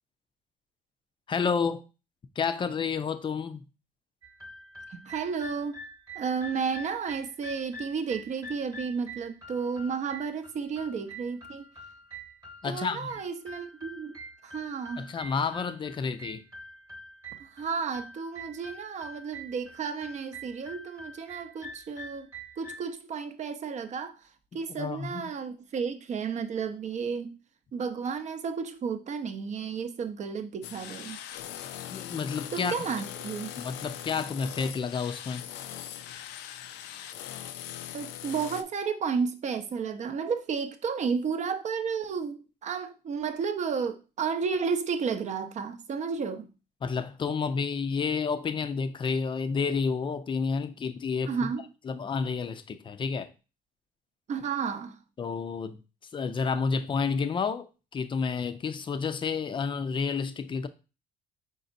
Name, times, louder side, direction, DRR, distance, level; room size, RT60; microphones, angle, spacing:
voice 1, 1.3-1.8 2.4-3.6 12.6-13.1 15.0-16.4 24.7-25.3 31.9-32.8 33.6-35.5 46.8-51.4 51.8-53.3 55.2-55.8 56.1-60.7, left 5 dB, 30° left, 0.4 m, -30 dB
sound 1, 4.2-22.9, right 1 dB, 20° right, 1.1 m, -46 dB
voice 2, 4.9-5.8 6.1-11.7 12.6-15.1 17.4-22.3 22.6-24.2 24.5-27.3 27.7-31.2 32.5-33.5 37.9-46.5 51.3-51.6 54.3-55.0, right 6 dB, 45° right, 0.6 m, -32 dB
sound 2, 30.6-38.6, left 11 dB, 90° left, 0.4 m, -41 dB
5.0 x 4.0 x 2.6 m
cardioid pair, 110°, 17 cm